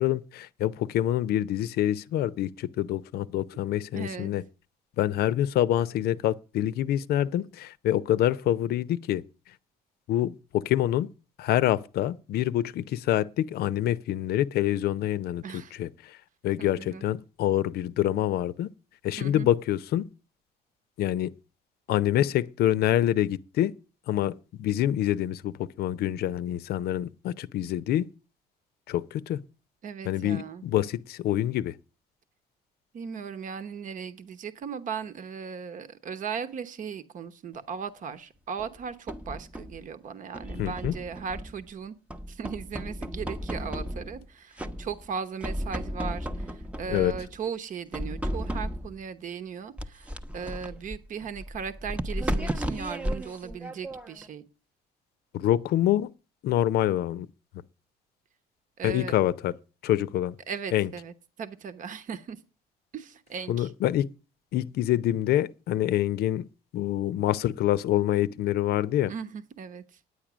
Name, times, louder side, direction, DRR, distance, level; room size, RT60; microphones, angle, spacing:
voice 1, 0.0-4.4 5.0-9.2 10.1-11.1 11.4-15.9 16.4-18.7 19.0-20.1 21.0-21.3 21.9-23.7 24.1-28.1 28.9-29.4 30.1-31.7 40.6-40.9 46.9-47.1 55.3-56.1 56.4-57.3 58.8-59.5 59.8-60.4 60.7-60.9 63.5-64.1 64.5-66.5 66.7-69.1, left 12 dB, 70° left, 0.6 m, -26 dB
voice 2, 3.9-4.3 15.4-15.8 16.6-17.0 19.2-19.5 29.8-30.6 32.9-42.0 42.3-54.4 58.8-59.2 60.5-62.4 62.9-63.7 69.1-69.8, right 6 dB, 50° right, 1.0 m, -37 dB
sound 1, 38.6-39.8 40.3-41.7 42.1-44.3 44.6-45.1 45.4-47.4 47.9-49.0 49.8-54.3, equal, 5° right, 0.7 m, -34 dB
9.8 x 8.8 x 6.1 m
cardioid pair, 110°, 17 cm